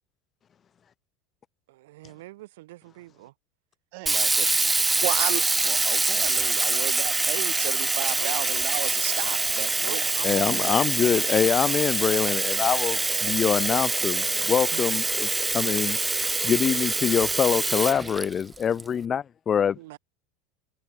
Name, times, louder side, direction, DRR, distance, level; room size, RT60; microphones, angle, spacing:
voice 1, 1.7-3.3 8.2-8.3 9.8-10.8 11.1-11.7 14.7-14.8 19.8-20.0, right 18 dB, 80° right, 7.9 m, -42 dB
voice 2, 3.9-4.5 5.0-10.1, right 40 dB or more, 65° right, 5.9 m, -34 dB
Sink (filling or washing), 4.1-18.8, right 3 dB, 10° right, 1.8 m, -25 dB
voice 3, 10.2-15.3 15.5-16.0 16.4-20.0, left 8 dB, 25° left, 2.5 m, -25 dB
supercardioid pair, 130°, 0 cm